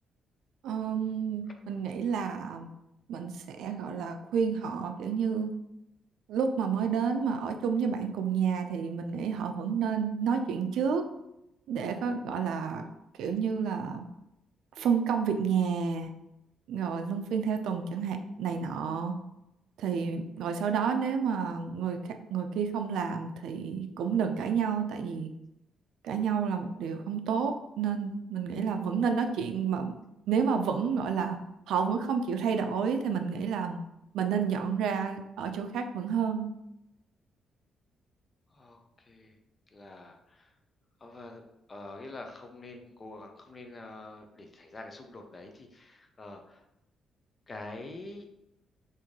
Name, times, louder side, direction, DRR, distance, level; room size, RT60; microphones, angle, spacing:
voice 1, 0.6-2.7 3.1-5.5 6.3-11.0 11.7-12.8 13.2-14.1 14.8-16.1 16.7-19.1 19.8-22.0 22.3-25.3 26.0-29.9 30.3-31.4 31.7-33.8 34.1-36.5, right 6 dB, 85° right, 6 dB, 0.4 m, -30 dB
voice 2, 38.5-39.4 39.7-40.5 41.0-41.4 41.7-46.6 47.5-48.3, left 2 dB, 25° left, 4 dB, 0.4 m, -46 dB
3.1 x 2.6 x 3.6 m, 0.86 s
cardioid pair, 165°, 0 cm